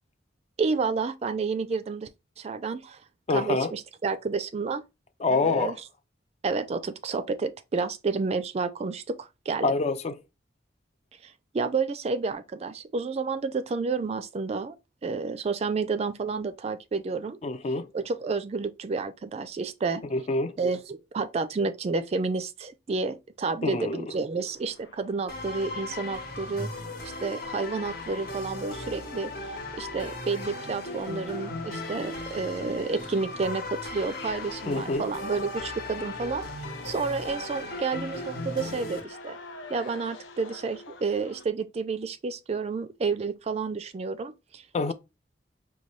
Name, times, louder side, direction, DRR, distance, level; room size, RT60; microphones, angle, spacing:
voice 1, 0.6-2.1 2.4-3.0 3.3-4.8 5.3-5.8 6.4-9.7 11.2-14.8 15.0-17.4 17.9-20.0 20.6-26.8 27.2-29.3 29.7-36.5 36.8-39.4 39.7-44.6, right 4 dB, 35° right, 0.3 m, -30 dB
voice 2, 3.3-3.7 5.2-5.8 9.6-10.2 17.4-17.9 20.1-20.6 23.6-24.0 34.7-35.0 44.7-44.9, left 3 dB, 35° left, 0.4 m, -26 dB
sound 1, 24.4-41.4, left 3 dB, 85° left, 0.7 m, -48 dB
sound 2, 25.3-39.0, left 2 dB, 55° left, 1.0 m, -37 dB
5.2 x 2.2 x 3.1 m
head